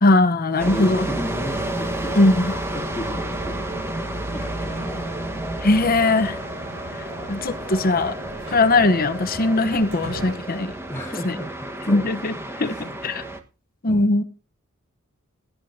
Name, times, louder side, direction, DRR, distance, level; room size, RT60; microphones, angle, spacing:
voice 1, 0.0-1.1 2.2-2.5 5.6-6.4 7.3-8.2 8.5-10.7 11.2-11.3 11.9-12.3 12.6-13.2 13.8-14.2, left 2 dB, 45° left, 10 dB, 0.9 m, -19 dB
voice 2, 0.6-3.6 4.3-5.0 10.9-12.1 12.6-13.0 13.9-14.1, left 1 dB, 15° left, -2 dB, 2.2 m, -34 dB
sound 1, 0.6-13.4, right 1 dB, 10° right, 1.3 m, -31 dB
sound 2, 1.1-10.4, right 1 dB, 70° right, 4.1 m, -39 dB
20.0 x 10.5 x 2.7 m, 0.32 s
head